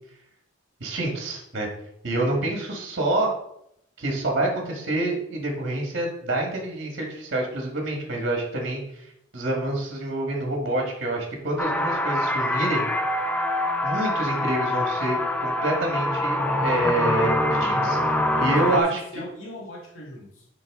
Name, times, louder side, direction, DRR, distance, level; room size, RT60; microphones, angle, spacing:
voice 1, 0.8-1.7 2.0-3.3 4.0-12.9 13.8-18.0 18.4-19.0, right 2 dB, 55° right, 0 dB, 1.5 m, -27 dB
sound 1, 11.6-18.8, left 1 dB, 10° left, 0.5 m, -24 dB
voice 2, 18.3-20.5, equal, 75° left, 0 dB, 1.6 m, -40 dB
10.5 x 3.9 x 3.6 m, 0.77 s
head